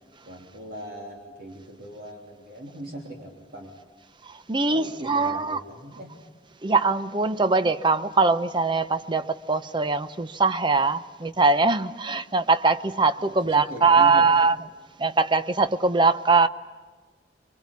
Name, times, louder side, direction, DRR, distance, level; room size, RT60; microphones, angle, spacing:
voice 1, 0.3-3.8 4.7-6.1 13.2-14.3, right 1 dB, 55° right, 3.1 m, -39 dB
voice 2, 4.3-5.6 6.6-14.6 15.0-16.5, right 4 dB, 25° right, 0.7 m, -22 dB
26.0 x 23.5 x 8.4 m
head